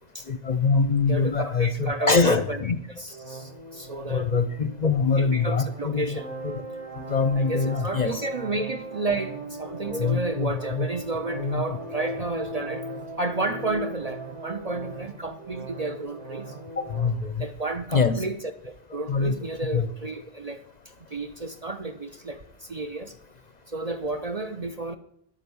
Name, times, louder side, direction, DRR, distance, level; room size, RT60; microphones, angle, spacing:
voice 1, 0.3-2.8 4.1-6.2 6.4-6.6 7.0-8.2 9.9-10.9 11.4-11.6 16.8-17.4 17.9-18.2 19.1-19.4 19.7-19.9, left 4 dB, 45° left, 0.7 m, -24 dB
voice 2, 1.1-2.6 2.9-4.3 5.2-6.3 7.3-12.9 13.2-16.5 17.4-20.6 21.1-23.1 23.7-25.0, right 2 dB, 40° right, 0.6 m, -32 dB
sound 1, 3.1-17.1, right 2 dB, 75° right, 2.4 m, -38 dB
10.5 x 9.1 x 7.0 m
omnidirectional pair, 1.2 m